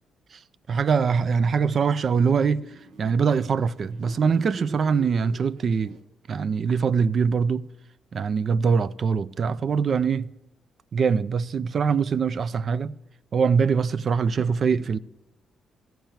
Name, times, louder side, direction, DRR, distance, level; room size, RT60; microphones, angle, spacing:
voice 1, 0.7-2.7 3.0-6.0 6.3-7.7 8.1-10.3 10.9-12.9 13.3-15.0, right 6 dB, 50° right, 0.3 m, -23 dB
sound 1, 2.0-6.0, right 3 dB, 90° right, 1.1 m, -46 dB
14.0 x 4.6 x 8.9 m
cardioid pair, 90°, 0 cm